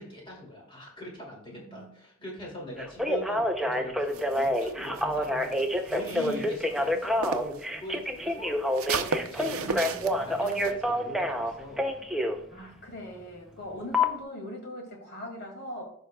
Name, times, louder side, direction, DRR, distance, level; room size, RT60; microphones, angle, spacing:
voice 1, 0.0-8.5 8.9-11.8, equal, 25° left, -2 dB, 2.4 m, -42 dB
voice 2, 1.5-1.9 2.4-2.6 6.1-6.6 9.6-10.3 12.5-15.8, equal, 50° left, 1 dB, 2.2 m, -41 dB
Telephone, 2.8-12.4 13.9-14.1, left 1 dB, ahead, 0.5 m, -28 dB
sound 1, 4.1-7.6 7.9-10.7, right 5 dB, 85° right, 0.6 m, -35 dB
14.0 x 5.5 x 2.3 m, 0.68 s
head